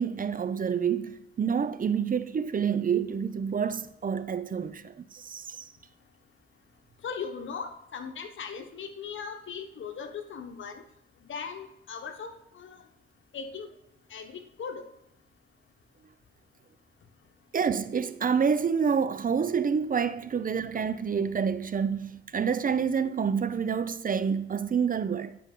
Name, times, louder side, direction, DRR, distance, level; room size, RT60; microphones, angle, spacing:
voice 1, 0.0-5.6 17.5-25.4, right 6 dB, 45° right, 0.6 m, -28 dB
voice 2, 7.0-10.8 11.2-12.8 13.3-13.7 14.1-14.9, left 6 dB, 70° left, 1.2 m, -39 dB
11.0 x 5.3 x 3.7 m
cardioid pair, 65°, 20 cm